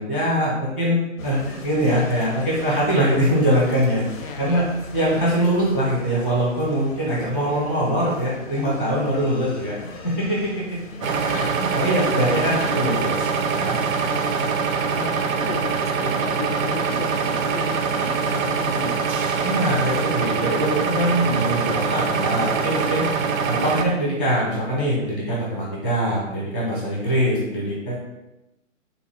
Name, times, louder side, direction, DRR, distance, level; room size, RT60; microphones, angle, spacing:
voice 1, 0.0-4.0 4.4-4.6 4.9-9.8 10.0-10.5 11.0-11.3 11.6-13.8 19.4-23.0 23.5-28.0, equal, 10° right, -11 dB, 0.3 m, -23 dB
sound 1, 1.2-12.7, left 2 dB, 85° left, 0.7 m, -39 dB
voice 2, 4.2-4.7 10.9-11.6 12.2-12.9 13.9-14.5 14.9-19.0, left 4 dB, 50° left, 5 dB, 0.5 m, -35 dB
sound 2, 11.0-23.8, right 5 dB, 90° right, 0.5 m, -24 dB
3.5 x 2.6 x 3.3 m, 0.95 s
figure-of-eight pair, 135°, 39 cm